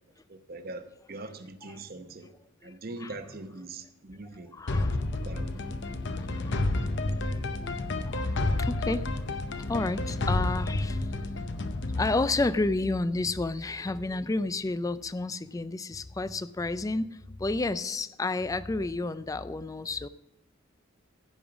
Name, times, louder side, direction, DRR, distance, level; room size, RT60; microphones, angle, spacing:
voice 1, 0.5-2.3 2.6-4.5 5.3-5.6, right 2 dB, 45° right, 8 dB, 0.8 m, -42 dB
voice 2, 2.6-3.2 4.3-5.0 5.9-6.8 7.1-7.8 8.1-9.2 9.7-11.2 12.0-20.1, left 2 dB, 15° left, 15 dB, 0.3 m, -31 dB
sound 1, 4.7-13.5, left 2 dB, 55° left, 0.7 m, -30 dB
15.5 x 5.4 x 6.0 m, 1.0 s
head